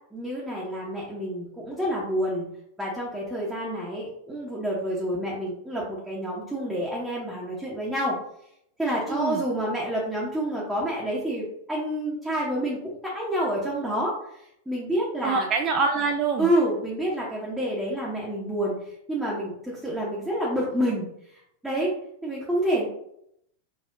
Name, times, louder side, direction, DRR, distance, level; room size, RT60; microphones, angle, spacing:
voice 1, 0.1-2.5 2.8-8.2 8.8-14.4 14.7-15.5 16.4-18.8 19.1-21.1 21.3-21.9 22.2-22.9, equal, 5° right, -6 dB, 1.0 m, -28 dB
voice 2, 9.1-9.4 15.2-16.5, right 4 dB, 30° right, 3 dB, 0.3 m, -25 dB
4.3 x 2.7 x 2.6 m, 0.74 s
figure-of-eight pair, 90°, 0 cm